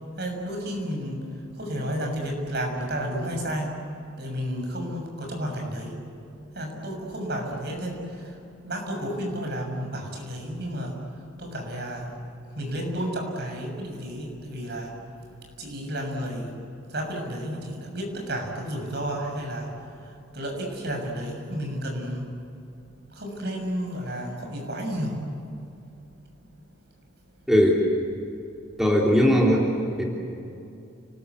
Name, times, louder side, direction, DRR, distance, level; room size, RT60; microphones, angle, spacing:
voice 1, 0.2-1.2 1.6-3.7 4.2-6.0 6.5-8.3 8.6-10.9 11.4-12.1 12.6-14.9 15.6-16.5 16.9-19.7 20.3-22.3 23.1-25.2, equal, 55° right, 2 dB, 6.9 m, -31 dB
voice 2, 27.5-27.8 28.8-29.7 30.0-30.1, equal, ahead, -3 dB, 3.4 m, -19 dB
30.0 x 21.0 x 8.3 m, 2.7 s
head